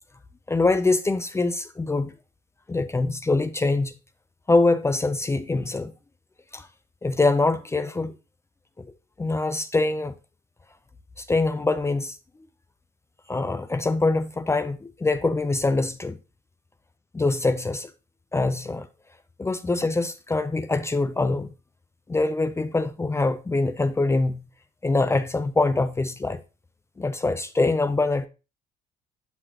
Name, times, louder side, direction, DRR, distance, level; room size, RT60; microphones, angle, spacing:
voice 1, 0.5-2.1 2.7-3.9 4.5-5.9 6.5-6.7 7.0-8.1 8.8-8.9 9.2-10.1 11.2-12.2 13.3-16.2 17.1-17.9 18.3-18.9 19.4-21.5 22.1-24.4 24.8-26.4 27.0-28.3, left 3 dB, 15° left, 0.6 m, -24 dB
11.0 x 4.9 x 2.9 m
cardioid pair, 110°, 17 cm